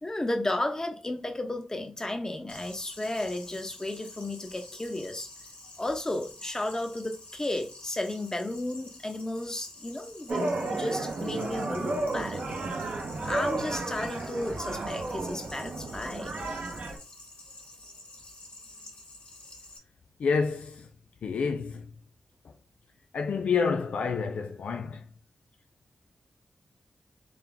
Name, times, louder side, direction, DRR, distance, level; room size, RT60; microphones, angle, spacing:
voice 1, 0.0-5.3 5.8-12.4 13.2-16.3, left 1 dB, 25° left, 1.0 m, -33 dB
sound 1, 2.5-19.8, left 2 dB, 65° left, 1.6 m, -49 dB
sound 2, 10.3-17.0, right 2 dB, 75° right, 0.9 m, -33 dB
voice 2, 20.2-20.9 21.2-21.9 23.1-25.1, left 5 dB, 90° left, 0.3 m, -28 dB
3.8 x 2.8 x 3.5 m
cardioid pair, 55°, 2 cm